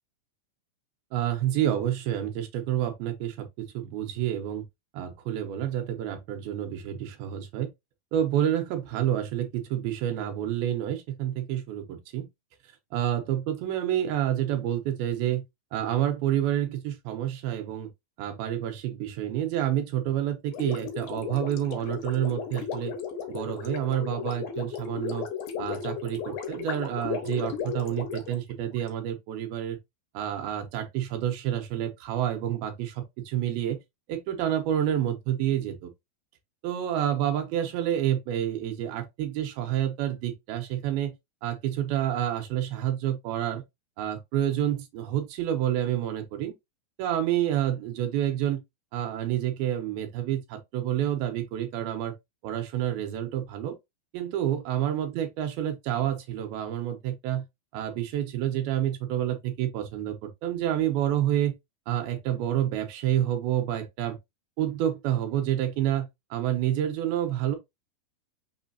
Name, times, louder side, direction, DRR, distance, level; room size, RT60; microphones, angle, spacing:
voice 1, 1.1-4.6 4.9-7.7 8.1-12.3 12.9-15.4 15.7-17.9 18.2-22.9 23.3-25.3 25.6-29.8 30.1-33.8 34.1-35.9 36.6-41.1 41.4-43.6 44.0-46.5 47.0-48.6 48.9-52.1 52.4-53.8 54.1-57.4 57.7-61.5 61.9-64.2 64.6-67.6, right 11 dB, 85° right, 2.8 m, -28 dB
Gurgling, 20.5-28.9, left 7 dB, 75° left, 2.6 m, -35 dB
6.0 x 3.2 x 2.7 m
omnidirectional pair, 4.3 m